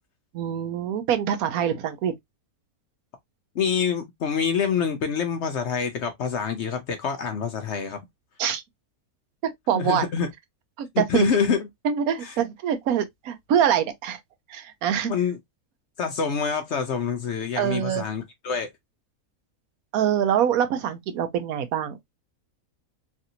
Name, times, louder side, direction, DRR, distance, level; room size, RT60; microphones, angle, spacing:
voice 1, 0.3-2.1 8.4-8.6 9.4-10.0 10.8-11.3 11.8-14.2 14.5-15.1 17.6-18.0 19.9-22.0, right 9 dB, 80° right, 1.1 m, -24 dB
voice 2, 3.6-8.0 9.7-10.3 10.9-11.7 12.2-12.3 15.0-15.4 16.0-18.7, left 6 dB, 65° left, 0.7 m, -26 dB
3.3 x 2.6 x 2.6 m
omnidirectional pair, 1.5 m